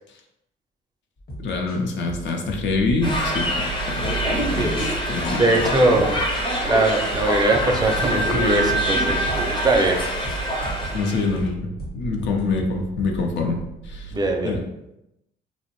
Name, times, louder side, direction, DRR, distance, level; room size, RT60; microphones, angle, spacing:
sound 1, 1.2-3.4 4.0-6.5 7.1-8.0 8.3-9.6 10.2-13.4, equal, 50° left, 1.0 m, -36 dB
voice 1, 1.4-4.2 4.5-5.6 5.8-6.0 10.9-13.6 13.8-14.1 14.4-14.6, left 3 dB, 65° left, 2 dB, 0.6 m, -26 dB
sound 2, 2.6-14.2, right 8 dB, 70° right, 0.5 m, -35 dB
sound 3, 3.0-11.4, left 1 dB, 25° left, 0.6 m, -25 dB
voice 2, 5.4-6.2 6.6-10.0 14.1-14.6, right 2 dB, 20° right, 1 dB, 0.5 m, -21 dB
2.5 x 2.0 x 3.0 m, 0.88 s
cardioid pair, 90°, 20 cm